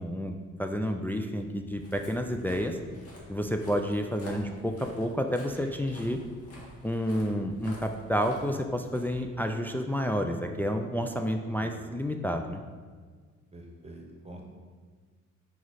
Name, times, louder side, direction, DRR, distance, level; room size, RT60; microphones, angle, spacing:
voice 1, 0.0-2.8 3.3-6.2 6.8-12.6, equal, 5° left, 4 dB, 0.4 m, -30 dB
Walk footsteps, 1.5-9.8, equal, 55° left, 1.6 m, -50 dB
voice 2, 4.3-4.6 11.6-11.8 13.5-14.4, right 1 dB, 20° right, 1 dB, 1.1 m, -46 dB
5.2 x 4.6 x 4.1 m, 1.5 s
cardioid pair, 90°, 30 cm